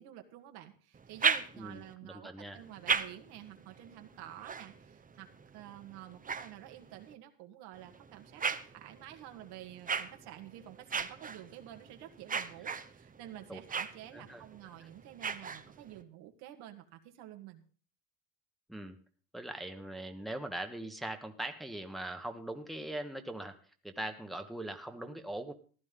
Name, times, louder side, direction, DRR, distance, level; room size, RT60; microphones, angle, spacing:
voice 1, 0.0-17.6, right 12 dB, 80° right, 5 dB, 1.8 m, -50 dB
sound 1, 0.9-1.9 2.5-7.1 7.7-16.0, right 6 dB, 20° right, 0.9 m, -38 dB
voice 2, 1.5-2.6 13.5-13.6 14.1-14.4 14.8-14.9 18.7-19.0 19.3-23.6 23.8-25.5, right 1 dB, ahead, 5 dB, 1.3 m, -41 dB
15.0 x 12.0 x 3.8 m, 0.42 s
supercardioid pair, 100°, 39 cm